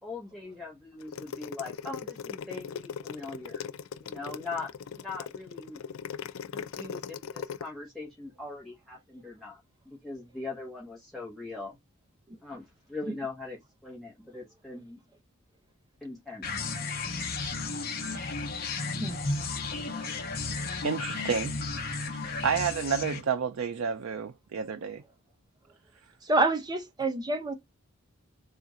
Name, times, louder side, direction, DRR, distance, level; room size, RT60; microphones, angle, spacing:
voice 1, 0.0-3.6 4.0-4.7 4.9-5.8 6.5-9.6 9.8-11.8 12.4-15.0 16.0-16.4, left 3 dB, ahead, 1.3 m, -41 dB
sound 1, 1.0-7.6, left 7 dB, 85° left, 0.4 m, -39 dB
sound 2, 16.4-23.2, left 3 dB, 45° left, 0.8 m, -33 dB
voice 2, 20.8-21.5 22.1-25.0, right 6 dB, 90° right, 0.4 m, -30 dB
voice 3, 26.2-27.5, right 2 dB, 20° right, 0.6 m, -27 dB
3.6 x 2.4 x 4.0 m
head